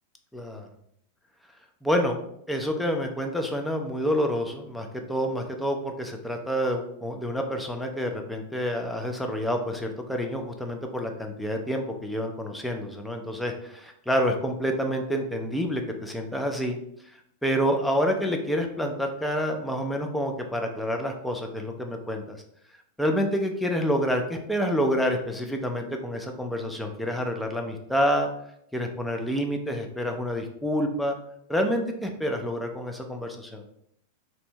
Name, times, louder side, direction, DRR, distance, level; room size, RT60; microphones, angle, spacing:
voice 1, 0.3-0.7 1.8-2.2 2.5-16.8 17.4-22.4 23.0-28.3 28.7-31.2 31.5-33.6, equal, 5° left, 3 dB, 0.5 m, -28 dB
2.8 x 2.5 x 3.2 m, 0.72 s
figure-of-eight pair, 90°, 0 cm